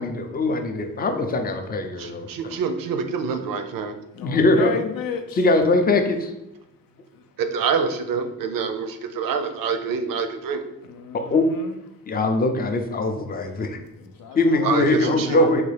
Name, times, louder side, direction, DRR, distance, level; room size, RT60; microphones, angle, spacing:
voice 1, 0.0-2.3 4.2-4.7 5.4-6.3 9.2-9.3 11.3-11.5 12.1-13.8 14.4-15.6, left 2 dB, 30° left, 5 dB, 0.4 m, -21 dB
voice 2, 2.0-4.0 7.4-10.6 14.6-15.4, right 5 dB, 80° right, 7 dB, 0.5 m, -26 dB
voice 3, 4.1-5.5 7.1-7.3 10.8-11.8 13.9-15.6, left 6 dB, 85° left, 7 dB, 0.5 m, -34 dB
3.6 x 2.4 x 3.2 m, 0.89 s
wide cardioid pair, 140°, 33 cm